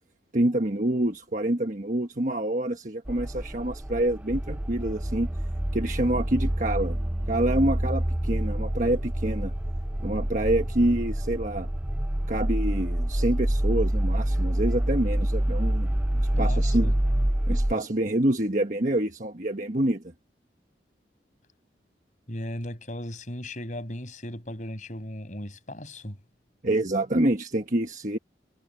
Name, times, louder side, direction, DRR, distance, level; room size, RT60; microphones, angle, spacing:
voice 1, 0.3-5.3 5.7-7.0 7.3-9.5 10.0-11.7 12.3-15.9 16.2-16.9 17.5-20.0 26.6-28.2, right 1 dB, 45° right, 1.3 m, -27 dB
sound 1, 3.0-17.7, right 1 dB, 10° right, 0.4 m, -27 dB
voice 2, 16.3-16.9 22.3-26.2, left 1 dB, 45° left, 6.6 m, -36 dB
head